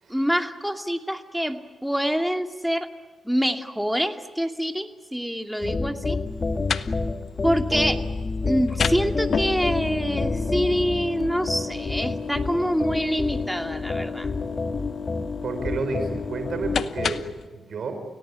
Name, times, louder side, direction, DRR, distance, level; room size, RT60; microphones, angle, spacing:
voice 1, 0.1-2.9 3.2-6.2 7.4-8.0 8.4-14.3, equal, ahead, 5 dB, 2.6 m, -26 dB
sound 1, 5.6-17.2, left 3 dB, 40° left, 2.1 m, -29 dB
sound 2, 6.3-17.5, left 6 dB, 65° left, 1.0 m, -33 dB
voice 2, 15.4-18.0, right 4 dB, 65° right, 8 dB, 4.9 m, -31 dB
30.0 x 18.0 x 10.0 m, 1.4 s
supercardioid pair, 55°, 0 cm